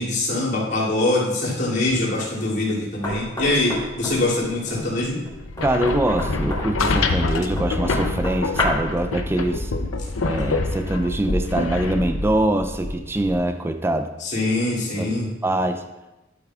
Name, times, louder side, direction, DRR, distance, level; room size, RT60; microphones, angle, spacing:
voice 1, 0.0-5.2 14.2-15.3, left 2 dB, 55° left, -7 dB, 2.8 m, -23 dB
Knock, 3.0-9.0, left 1 dB, 20° left, 2.3 m, -31 dB
sound 1, 5.4-13.4, left 3 dB, 85° left, 0.7 m, -26 dB
voice 2, 5.6-9.7 10.2-14.1 15.0-15.1 15.4-15.8, right 1 dB, 10° right, 8 dB, 0.4 m, -23 dB
11.5 x 8.4 x 2.4 m, 1.0 s
head